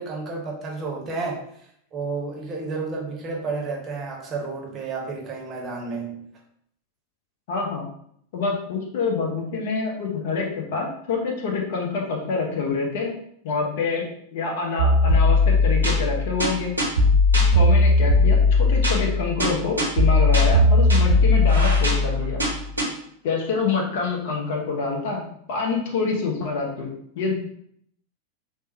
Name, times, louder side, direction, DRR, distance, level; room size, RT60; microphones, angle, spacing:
voice 1, 0.0-1.4 1.9-6.2, right 4 dB, 25° right, -1 dB, 0.7 m, -31 dB
voice 2, 7.5-7.8 8.3-13.1 13.4-14.0 14.3-16.7 17.5-22.4 23.2-25.2 25.5-26.9 27.2-27.3, left 4 dB, 50° left, 0 dB, 0.6 m, -26 dB
sound 1, 14.8-22.8, left 2 dB, 80° right, 0.7 m, -18 dB
3.4 x 2.0 x 2.7 m, 0.69 s
figure-of-eight pair, 90°, 0 cm